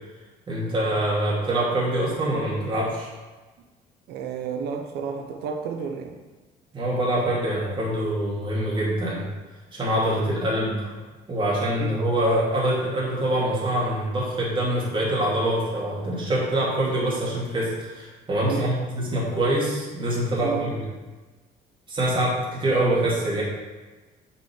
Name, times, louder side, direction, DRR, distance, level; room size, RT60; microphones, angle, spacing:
voice 1, 0.5-3.1 6.7-9.2 9.7-10.9 11.3-20.8 21.9-23.4, right 1 dB, 30° right, -6 dB, 2.8 m, -25 dB
voice 2, 4.1-6.2 11.8-11.9 18.4-18.7 20.4-20.7, right 6 dB, 75° right, 3 dB, 1.0 m, -31 dB
6.3 x 6.0 x 6.4 m, 1.3 s
cardioid pair, 110°, 17 cm